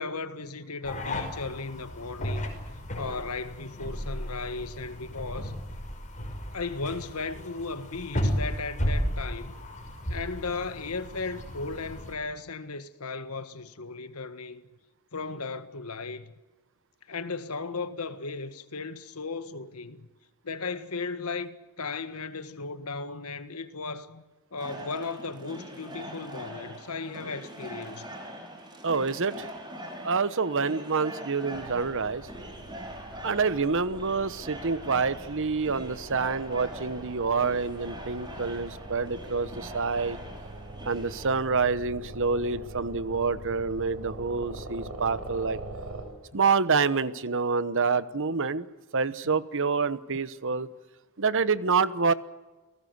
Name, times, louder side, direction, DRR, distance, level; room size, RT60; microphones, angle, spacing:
voice 1, 0.0-2.5 3.0-5.5 6.5-9.6 10.1-14.6 15.1-16.3 17.1-20.1 20.4-24.2 24.5-28.1 46.3-46.4 49.2-49.3, left 4 dB, 75° left, 1.7 m, -36 dB
sound 1, 0.8-12.1, equal, 35° left, 5.5 m, -34 dB
sound 2, 24.6-41.3, equal, 20° right, 5.4 m, -43 dB
voice 2, 28.8-29.5 30.0-32.3 33.2-40.2 40.8-45.6 46.3-48.7 48.9-50.7 51.2-52.1, right 4 dB, 60° right, 1.1 m, -27 dB
sound 3, 31.5-46.0, right 2 dB, 85° right, 7.0 m, -43 dB
29.5 x 18.5 x 8.1 m
head